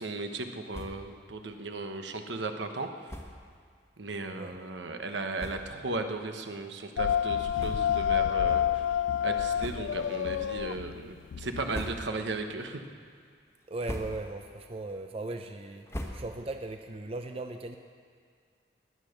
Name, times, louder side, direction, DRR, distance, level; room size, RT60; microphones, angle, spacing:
voice 1, 0.0-2.9 4.0-8.6 9.2-12.8, right 3 dB, 75° right, 6 dB, 1.1 m, -36 dB
sound 1, 0.7-1.2 1.5-1.6 1.9-2.0 3.0-3.5 4.2-4.3 5.0-5.1 5.3-5.9 6.4-6.6 7.5-8.2 8.5-8.7 9.5-10.1 10.6-11.0 11.5-12.4 12.8-13.2 13.6-14.5 14.8-16.7, equal, 15° left, 1.2 m, -42 dB
sound 2, 7.0-11.9, left 9 dB, 90° left, 0.3 m, -28 dB
voice 2, 13.7-15.9 16.1-17.8, right 2 dB, 30° right, 6 dB, 0.6 m, -38 dB
20.5 x 8.8 x 6.6 m, 2.1 s
head